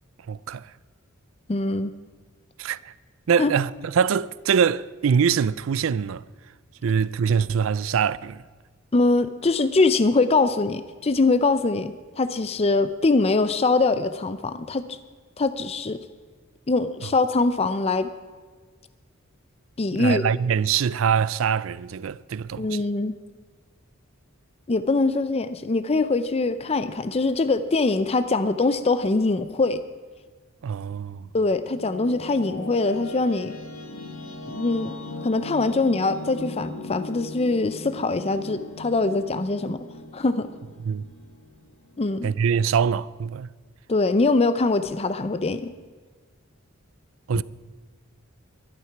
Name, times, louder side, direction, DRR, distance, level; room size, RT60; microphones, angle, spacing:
voice 1, 0.3-0.6 2.6-2.9 3.3-6.2 6.8-8.4 19.9-22.8 30.6-31.3 40.8-41.0 42.2-43.5 47.3-47.4, right 7 dB, 70° right, 0.4 m, -23 dB
voice 2, 1.5-1.9 3.4-3.5 8.9-15.0 15.4-16.0 16.7-18.1 19.8-20.2 22.6-23.1 24.7-29.8 31.3-33.5 34.5-34.9 35.2-39.8 40.1-40.5 42.0-42.3 43.9-45.7, left 3 dB, 30° left, 0.5 m, -23 dB
sound 1, 31.1-42.1, left 2 dB, 90° left, 1.4 m, -39 dB
12.0 x 11.5 x 5.9 m
head